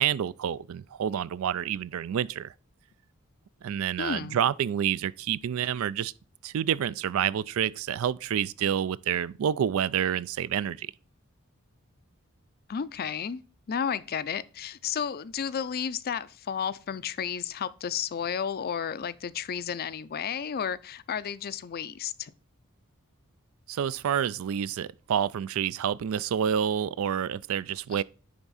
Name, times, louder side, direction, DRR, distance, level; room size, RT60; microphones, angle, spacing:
voice 1, 0.0-2.5 3.6-6.1 6.4-10.9 23.7-28.0, right 9 dB, 70° right, 0.3 m, -28 dB
voice 2, 4.0-4.4 12.7-13.4 13.7-22.3, left 7 dB, 45° left, 0.4 m, -32 dB
10.5 x 3.5 x 4.0 m
head